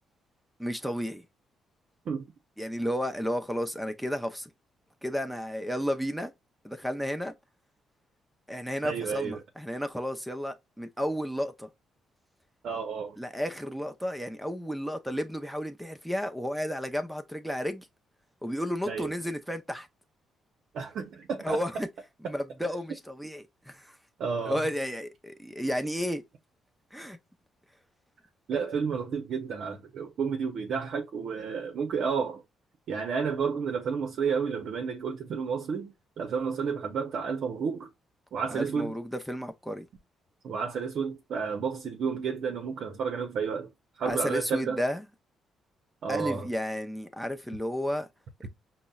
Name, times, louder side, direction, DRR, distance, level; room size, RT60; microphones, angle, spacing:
voice 1, 0.6-1.2 2.6-4.5 5.0-6.3 6.6-7.3 8.5-11.7 13.2-17.9 18.4-19.9 21.4-21.9 22.3-23.9 24.5-26.2 26.9-27.2 38.5-39.9 44.1-45.1 46.1-48.1, equal, ahead, 0.6 m, -32 dB
voice 2, 8.8-9.4 12.6-13.2 18.9-19.1 20.7-21.6 24.2-24.6 28.5-32.4 32.9-37.9 38.3-39.0 40.4-43.7 44.0-44.8 46.0-46.5, right 6 dB, 65° right, 0.6 m, -31 dB
5.2 x 2.0 x 2.3 m
cardioid pair, 90°, 0 cm